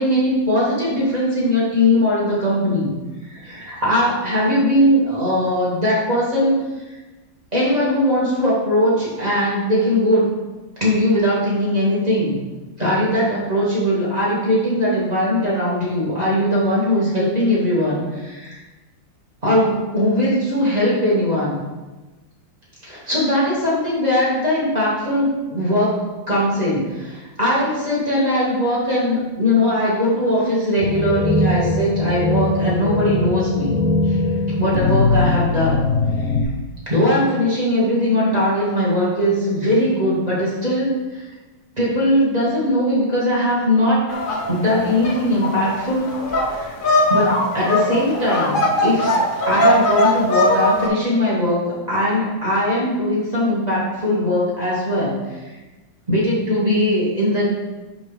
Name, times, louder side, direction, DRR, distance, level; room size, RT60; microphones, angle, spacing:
voice 1, 0.0-2.9 3.2-6.6 7.5-10.3 10.8-12.4 12.8-18.6 19.4-21.6 22.8-26.0 26.3-33.7 34.1-34.2 34.6-35.8 36.9-41.3 41.8-44.0 44.5-46.1 46.4-46.7 47.1-49.1 49.5-51.6 51.9-55.4 56.1-57.5, left 1 dB, 20° right, -7 dB, 2.0 m, -20 dB
sound 1, 30.8-36.4, left 2 dB, 90° left, 1.4 m, -21 dB
sound 2, 44.1-50.9, left 1 dB, 65° left, 0.5 m, -20 dB
6.2 x 5.3 x 3.3 m, 1.2 s
omnidirectional pair, 2.1 m